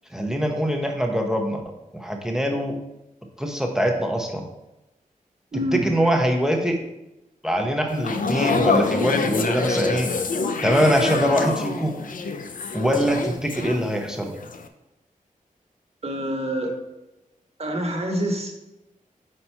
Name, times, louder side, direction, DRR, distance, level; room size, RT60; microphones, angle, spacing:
voice 1, 0.1-1.6 1.9-2.8 3.4-4.4 5.7-6.8 7.4-10.1 10.6-11.9 12.7-14.3, equal, 5° right, 3 dB, 0.7 m, -23 dB
voice 2, 5.5-5.8 16.0-16.7 17.6-18.7, right 1 dB, 45° right, 1 dB, 1.3 m, -26 dB
sound 1, 7.9-14.1 14.4-14.7, left 4 dB, 70° left, 0.5 m, -26 dB
5.6 x 4.2 x 4.4 m, 0.95 s
wide cardioid pair, 85°, 15 cm